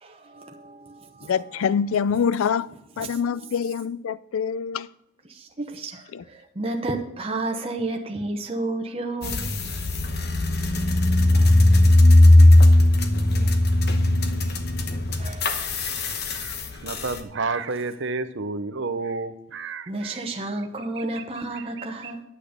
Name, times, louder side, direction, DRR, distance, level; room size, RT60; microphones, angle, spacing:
voice 1, 0.0-1.7 3.0-3.5 5.3-9.5 11.3-11.5 13.3-13.5 15.2-15.5 19.9-22.2, right 2 dB, 25° right, 0.9 m, -32 dB
voice 2, 1.3-2.7 3.0-4.9 6.1-6.2, left 7 dB, 65° left, 0.3 m, -25 dB
sound 1, 9.2-17.2, left 1 dB, 45° left, 1.0 m, -18 dB
voice 3, 16.8-20.3 21.0-21.2 21.5-22.1, right 3 dB, 55° right, 0.7 m, -31 dB
9.3 x 8.3 x 5.1 m
head